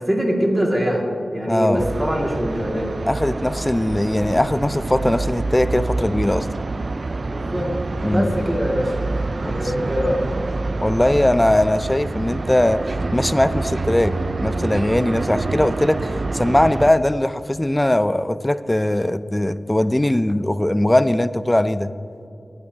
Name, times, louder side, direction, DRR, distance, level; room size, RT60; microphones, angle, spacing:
voice 1, 0.0-2.9 7.2-7.7 8.0-8.9 9.4-10.2, equal, 20° right, -1 dB, 2.1 m, -23 dB
voice 2, 1.5-1.9 3.0-6.5 8.0-8.3 9.4-9.7 10.8-12.8 13.1-21.9, left 1 dB, 15° left, 13 dB, 0.4 m, -20 dB
sound 1, 1.8-16.9, right 3 dB, 55° right, 0.3 m, -27 dB
20.5 x 9.6 x 2.8 m, 2.6 s
wide cardioid pair, 85°, 0 cm